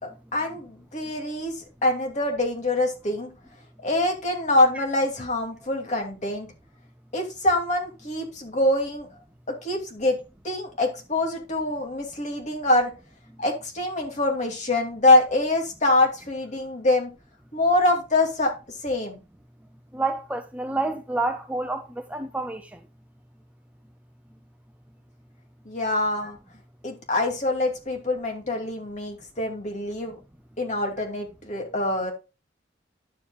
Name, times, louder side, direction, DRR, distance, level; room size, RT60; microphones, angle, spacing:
voice 1, 0.0-3.3 3.8-6.5 7.1-9.1 9.5-10.2 10.4-12.9 13.4-17.1 17.5-18.5 18.8-19.2 25.6-26.4 26.8-30.2 30.6-32.1, left 2 dB, 40° left, 2.6 m, -24 dB
voice 2, 19.9-22.8, right 2 dB, 10° right, 0.5 m, -29 dB
11.5 x 7.5 x 2.4 m
head